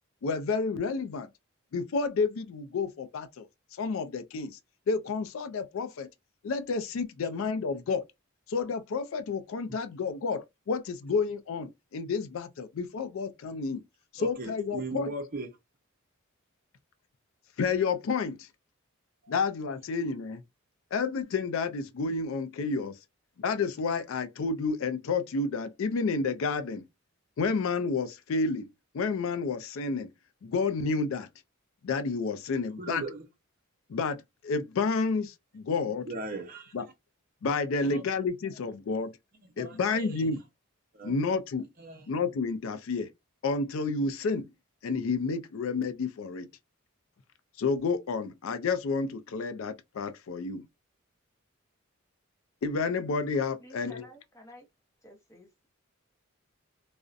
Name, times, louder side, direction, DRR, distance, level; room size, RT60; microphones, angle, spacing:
voice 1, 0.2-1.3 1.7-3.5 3.8-4.6 4.9-6.1 6.4-8.0 8.5-13.8 14.1-15.1 17.6-18.5 19.3-20.4 20.9-23.0 23.4-26.8 27.4-28.7 28.9-30.1 30.4-31.3 31.8-33.0 33.9-36.1 36.7-36.8 37.4-39.1 39.6-40.4 41.0-41.7 42.1-43.1 43.4-44.5 44.8-46.5 47.6-50.7 52.6-54.0, left 4 dB, 65° left, 0.4 m, -30 dB
voice 2, 14.2-15.5 32.8-33.2 35.8-36.7 37.8-38.0 39.4-40.3 40.9-41.1 41.8-42.1, right 2 dB, 40° right, 0.6 m, -38 dB
voice 3, 53.6-54.7 55.0-55.5, equal, 15° left, 0.6 m, -51 dB
2.5 x 2.0 x 2.4 m
head